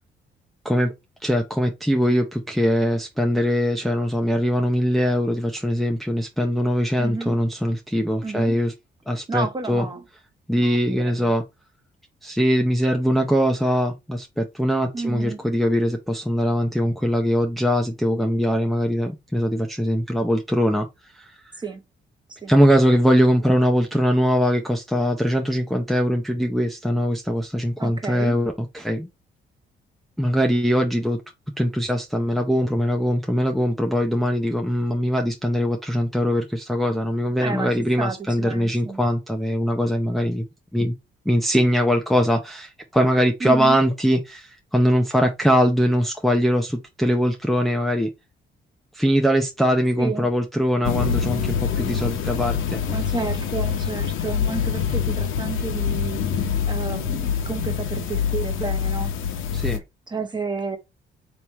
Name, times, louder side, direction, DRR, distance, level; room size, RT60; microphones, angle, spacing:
voice 1, 1.2-8.7 9.1-9.9 10.5-11.4 12.2-20.9 21.1-21.6 22.5-29.1 30.2-31.2 31.6-40.5 40.7-41.0 41.3-48.1 48.9-52.8 59.5-59.8, equal, ahead, 0.6 m, -21 dB
voice 2, 7.0-7.4 8.2-8.6 9.3-10.0 10.5-11.3 14.9-15.4 21.6-21.8 22.3-22.5 27.8-28.4 37.4-39.0 43.4-43.8 50.0-50.3 52.9-56.2 56.6-59.1 60.1-60.8, right 4 dB, 20° right, 1.1 m, -31 dB
sound 1, 50.8-59.8, left 7 dB, 80° left, 0.9 m, -25 dB
3.4 x 3.0 x 4.2 m
cardioid pair, 90°, 20 cm